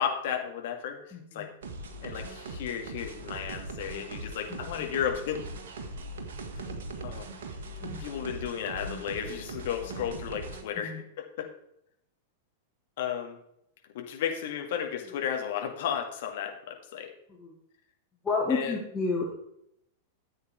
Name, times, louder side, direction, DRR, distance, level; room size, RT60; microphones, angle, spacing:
voice 1, 0.0-1.0 1.3-1.5 2.0-5.4 7.0-7.3 8.0-10.9 11.4-11.5 13.0-13.4 13.9-17.1 18.5-18.8, left 8 dB, 55° left, 3 dB, 2.0 m, -33 dB
voice 2, 1.1-1.5 4.5-4.9 7.8-8.1 10.7-11.0 17.3-17.5 18.2-19.3, left 3 dB, 15° left, -3 dB, 2.3 m, -31 dB
sound 1, 1.6-10.6, right 2 dB, 60° right, 1.7 m, -40 dB
13.5 x 8.1 x 3.5 m, 0.75 s
figure-of-eight pair, 95°, 0 cm